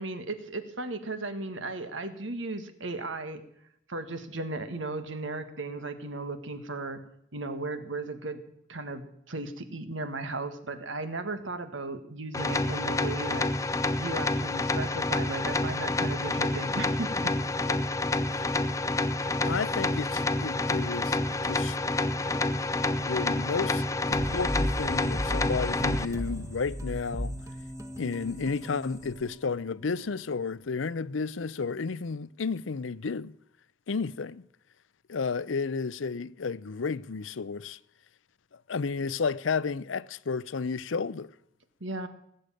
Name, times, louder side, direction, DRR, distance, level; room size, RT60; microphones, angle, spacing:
voice 1, 0.0-3.4 3.9-7.0 7.3-8.4 8.7-13.5 14.0-17.3 17.7-17.8 41.8-42.1, right 2 dB, 75° right, 1.7 m, -36 dB
sound 1, 12.3-26.1, left 2 dB, 15° left, 0.6 m, -28 dB
voice 2, 19.4-21.8 23.0-27.3 28.0-33.3 33.9-34.4 35.1-37.8 38.7-41.3, left 5 dB, 80° left, 0.6 m, -32 dB
sound 2, 24.1-29.8, equal, 15° right, 1.4 m, -35 dB
18.5 x 8.1 x 9.0 m
head